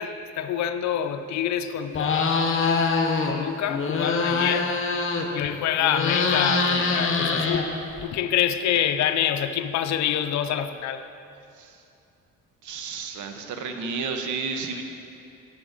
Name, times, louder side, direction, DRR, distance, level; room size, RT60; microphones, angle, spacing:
voice 1, 0.0-2.6 3.3-4.7 5.3-11.1, left 9 dB, 65° left, 9 dB, 0.5 m, -26 dB
sound 1, 1.9-3.3 3.7-5.5 5.8-8.0, left 4 dB, 45° left, 0.9 m, -24 dB
voice 2, 12.6-14.8, right 4 dB, 75° right, 5 dB, 0.9 m, -32 dB
9.6 x 6.7 x 4.0 m, 2.6 s
cardioid pair, 90°, 30 cm